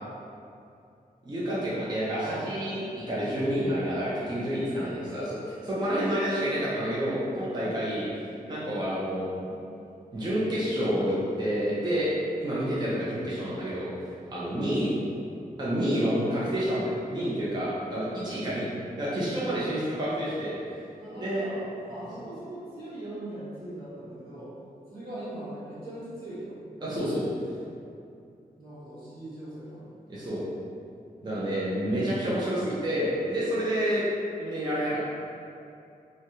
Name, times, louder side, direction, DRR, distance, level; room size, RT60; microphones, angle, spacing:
voice 1, 1.2-8.1 8.5-9.3 10.1-12.1 12.4-13.9 14.3-14.9 15.6-18.7 19.0-20.5 21.2-21.4 26.8-27.2 30.1-30.4 31.2-34.0 34.4-35.0, equal, 25° right, -9 dB, 0.6 m, -29 dB
voice 2, 7.5-7.8 9.4-9.6 19.3-19.7 21.0-24.5 24.9-26.5 28.6-29.8 31.3-31.7, right 1 dB, 75° right, -12 dB, 1.3 m, -40 dB
3.1 x 2.3 x 2.7 m, 2.5 s
wide cardioid pair, 115°, 16 cm